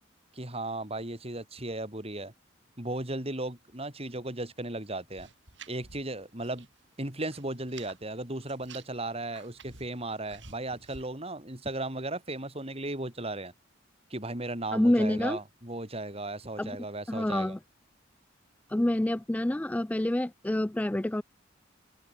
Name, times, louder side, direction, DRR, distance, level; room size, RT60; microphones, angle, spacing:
voice 1, 0.3-2.3 2.8-5.3 5.7-6.7 7.0-13.5 14.1-17.5, right 2 dB, 30° right, 5.7 m, -36 dB
sound 1, 5.2-6.8 7.0-8.0 8.4-11.1, right 5 dB, 65° right, 7.9 m, -51 dB
voice 2, 14.7-15.4 16.6-16.7 17.1-17.6 18.7-21.2, left 1 dB, 10° left, 0.3 m, -27 dB
open air
head